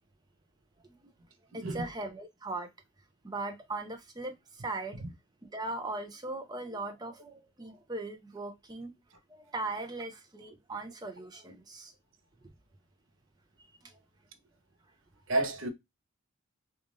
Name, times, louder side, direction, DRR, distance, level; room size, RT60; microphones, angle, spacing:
voice 1, 1.5-2.7 3.2-5.0 5.5-8.9 9.3-11.9 12.4-12.5 13.6-14.0, right 2 dB, 20° right, 0.5 m, -39 dB
voice 2, 15.3-15.7, right 2 dB, 60° right, 0.7 m, -30 dB
3.1 x 2.4 x 2.5 m
head